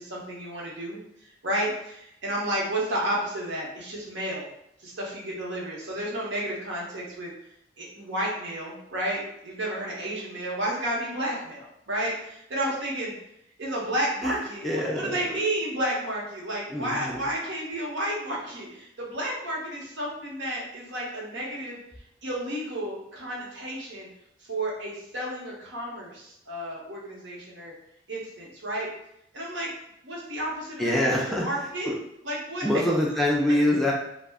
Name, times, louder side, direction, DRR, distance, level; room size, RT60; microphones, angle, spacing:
voice 1, 0.0-4.5 4.8-7.3 7.8-13.1 13.6-21.8 22.2-24.1 24.4-27.7 28.1-28.9 29.3-29.7 30.0-31.9 32.2-32.7 33.1-33.2, right 1 dB, 70° right, -3 dB, 0.8 m, -32 dB
voice 2, 14.6-15.2 16.7-17.2 30.8-31.5 31.9-32.0 32.6-33.9, left 1 dB, ahead, -4 dB, 0.3 m, -24 dB
2.3 x 2.0 x 3.4 m, 0.78 s
head